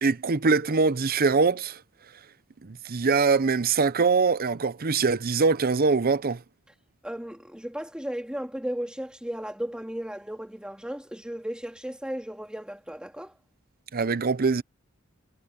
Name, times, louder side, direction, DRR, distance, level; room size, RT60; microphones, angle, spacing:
voice 1, 0.0-1.8 2.6-6.4 13.9-14.6, right 4 dB, 45° right, 0.7 m, -23 dB
voice 2, 7.0-13.3, equal, 5° right, 3.2 m, -35 dB
head